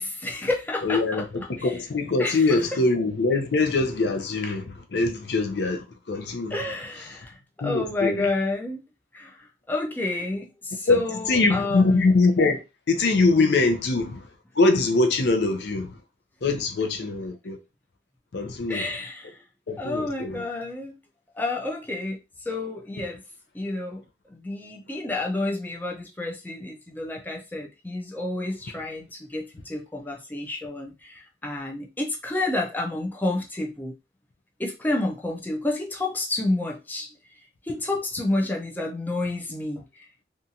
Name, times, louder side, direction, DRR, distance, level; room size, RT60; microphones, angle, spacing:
voice 1, 0.0-1.3 1.6-1.7 2.2-2.6 6.5-8.8 9.1-12.1 18.7-19.4 19.8-21.0 21.3-23.2 23.5-24.0 24.3-34.0 34.6-37.1 37.6-39.8, left 2 dB, 10° left, 0.4 m, -30 dB
voice 2, 0.8-6.6 7.6-8.3 10.9-12.6 12.9-14.3 14.6-16.0 16.4-17.6 18.3-18.9 19.7-20.4, left 3 dB, 70° left, 0.5 m, -23 dB
2.6 x 2.3 x 2.7 m
head